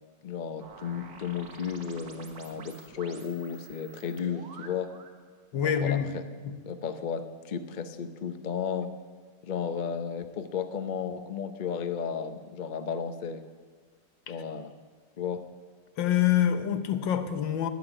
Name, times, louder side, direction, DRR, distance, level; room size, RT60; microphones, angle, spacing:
voice 1, 0.2-4.9 5.6-6.2 6.7-8.9 9.4-13.4 14.3-14.7 15.2-15.4, left 7 dB, 60° left, 0.5 m, -34 dB
sound 1, 0.6-5.2, right 5 dB, 80° right, 2.0 m, -49 dB
voice 2, 5.5-6.1 6.4-6.5 16.0-17.7, left 10 dB, 85° left, 1.6 m, -26 dB
11.5 x 9.1 x 9.7 m
omnidirectional pair, 2.0 m